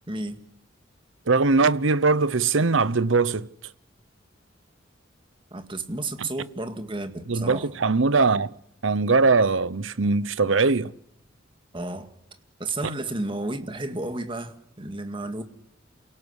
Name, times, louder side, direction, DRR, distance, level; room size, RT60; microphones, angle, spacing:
voice 1, 0.1-0.4 5.5-7.7 11.7-12.1 12.6-15.4, right 2 dB, 25° right, 2.1 m, -32 dB
voice 2, 1.3-3.5 6.2-6.3 7.3-8.5 8.8-10.9, right 4 dB, 80° right, 0.9 m, -21 dB
28.5 x 17.5 x 8.2 m
head